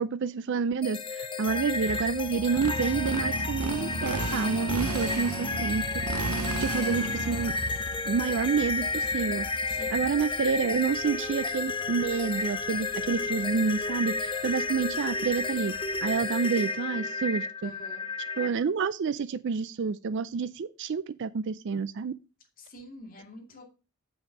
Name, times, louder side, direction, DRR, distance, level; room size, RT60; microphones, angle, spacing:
voice 1, 0.0-6.3 6.6-7.5 8.1-17.7 18.4-22.1, right 5 dB, 55° right, 0.4 m, -29 dB
sound 1, 0.8-18.5, left 3 dB, 20° left, 0.7 m, -32 dB
sound 2, 1.4-16.3, equal, 40° right, 3.3 m, -52 dB
Motorcycle, 1.9-10.5, right 2 dB, 85° right, 0.9 m, -34 dB
voice 2, 9.7-10.1 17.6-18.1 22.6-23.6, left 1 dB, 40° left, 2.4 m, -46 dB
7.1 x 5.7 x 5.3 m
head